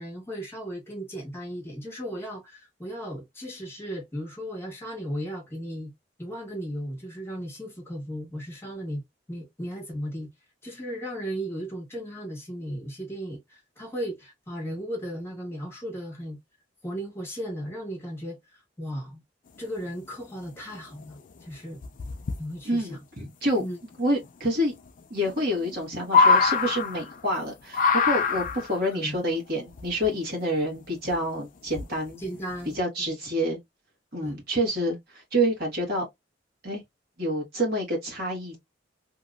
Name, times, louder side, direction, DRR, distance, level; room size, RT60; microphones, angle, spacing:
voice 1, 0.0-5.9 6.2-10.3 10.6-16.4 16.8-19.2 19.6-21.8 22.4-23.0 23.6-23.8 28.7-29.2 32.2-33.1 34.2-34.4, equal, 15° left, 1.3 m, -36 dB
sound 1, 20.7-20.8 21.1-21.4 21.8-22.4 23.9-24.0 24.2-24.3 24.9-25.0 25.3-27.4 27.7-28.8 29.7-30.4 31.1-31.2 31.7-32.1 32.5-32.7, left 4 dB, 45° left, 0.4 m, -23 dB
voice 2, 22.6-23.6 24.0-24.7 25.1-32.2 32.7-33.6 34.1-36.1 36.6-36.8 37.2-38.6, equal, 55° right, 1.5 m, -28 dB
2.9 x 2.7 x 2.4 m
head